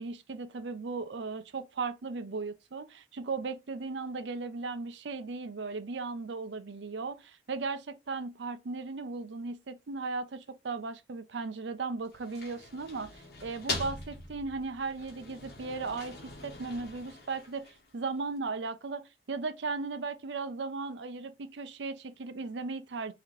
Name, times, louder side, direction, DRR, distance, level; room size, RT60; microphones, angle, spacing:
voice 1, 0.0-13.1 13.4-16.2 16.4-23.1, right 4 dB, 75° right, 0.5 m, -37 dB
sound 1, 12.0-18.0, left 2 dB, 55° left, 1.4 m, -42 dB
3.7 x 3.2 x 4.4 m
head